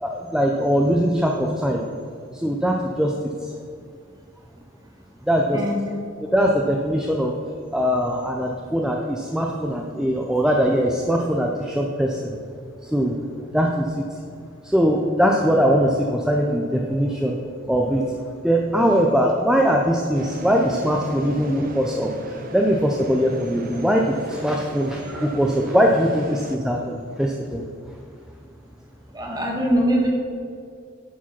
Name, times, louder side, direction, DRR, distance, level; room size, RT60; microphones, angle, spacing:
voice 1, 0.0-1.8 2.3-3.1 3.4-3.5 5.3-5.6 6.3-7.3 7.7-12.3 12.8-13.2 13.5-14.0 14.6-17.4 17.7-18.0 18.4-27.6, equal, 5° right, 0 dB, 0.5 m, -21 dB
sound 1, 20.1-26.6, right 1 dB, 45° right, 0.7 m, -36 dB
voice 2, 29.1-30.1, equal, 20° right, -1 dB, 1.5 m, -22 dB
10.0 x 4.9 x 5.9 m, 2.3 s
head